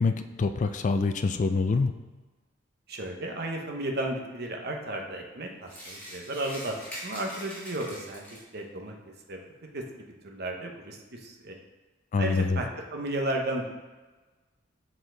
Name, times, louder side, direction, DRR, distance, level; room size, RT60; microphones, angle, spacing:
voice 1, 0.0-1.9 12.1-12.6, left 4 dB, 40° left, 9 dB, 0.4 m, -25 dB
voice 2, 2.9-6.8 7.0-8.9 9.3-9.4 9.7-11.5 12.2-13.8, right 1 dB, 55° right, 2 dB, 1.0 m, -34 dB
sound 1, 5.7-8.6, equal, 10° left, 1.8 m, -43 dB
7.0 x 4.4 x 3.9 m, 1.3 s
head